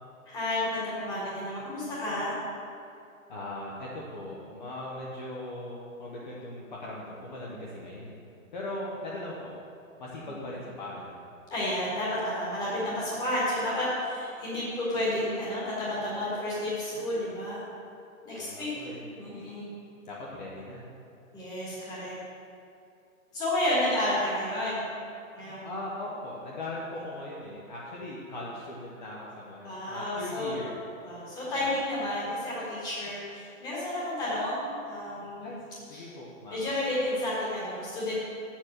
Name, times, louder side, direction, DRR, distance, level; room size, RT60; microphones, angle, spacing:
voice 1, 0.2-2.3 10.3-10.4 11.5-17.6 18.2-18.7 19.2-19.7 21.3-22.1 23.3-24.8 25.3-25.7 29.6-30.6 31.0-35.6 35.9-36.0 36.5-38.2, left 1 dB, 10° left, -7 dB, 1.7 m, -31 dB
voice 2, 3.3-8.2 8.5-9.5 10.0-11.2 18.4-19.0 20.1-20.9 25.6-30.7 31.6-31.7 35.4-35.6 35.9-36.7, left 1 dB, 35° left, -4 dB, 1.0 m, -39 dB
7.4 x 7.3 x 6.5 m, 2.6 s
hypercardioid pair, 175°, 42 cm